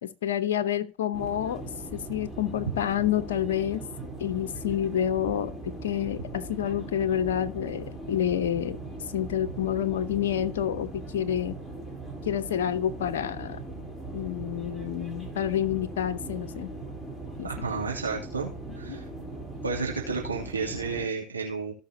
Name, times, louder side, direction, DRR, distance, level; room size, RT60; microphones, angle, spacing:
voice 1, 0.0-1.6 1.9-3.9 4.2-5.5 5.8-8.8 9.1-11.6 12.2-13.6 14.1-16.7 17.4-17.6 18.9-19.0, left 10 dB, 65° left, 10 dB, 0.9 m, -28 dB
sound 1, 1.1-21.1, right 2 dB, ahead, 3.8 m, -39 dB
voice 2, 17.4-18.5 18.8-19.0 19.6-21.7, right 4 dB, 90° right, -3 dB, 2.7 m, -31 dB
18.0 x 6.0 x 2.8 m, 0.33 s
figure-of-eight pair, 85°, 0 cm